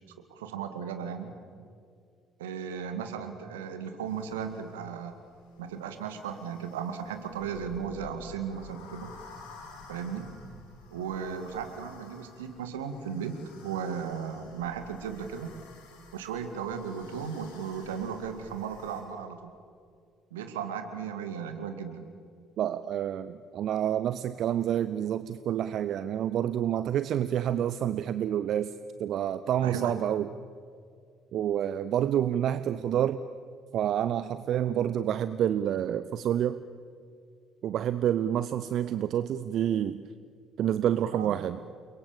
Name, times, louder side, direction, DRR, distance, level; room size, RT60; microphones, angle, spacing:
voice 1, 0.3-1.3 2.4-5.1 5.6-9.1 9.9-10.3 10.9-15.5 16.1-19.5 20.3-22.0 29.6-29.9 41.1-41.4, right 7 dB, 75° right, 7 dB, 2.2 m, -36 dB
sound 1, 4.1-19.0, left 4 dB, 70° left, 5.8 m, -52 dB
voice 2, 22.6-28.7 29.0-30.3 31.3-33.2 33.7-36.6 37.6-40.0 40.6-41.6, right 10 dB, 55° right, 14 dB, 0.7 m, -28 dB
30.0 x 22.5 x 7.3 m, 2.2 s
figure-of-eight pair, 50°, 0 cm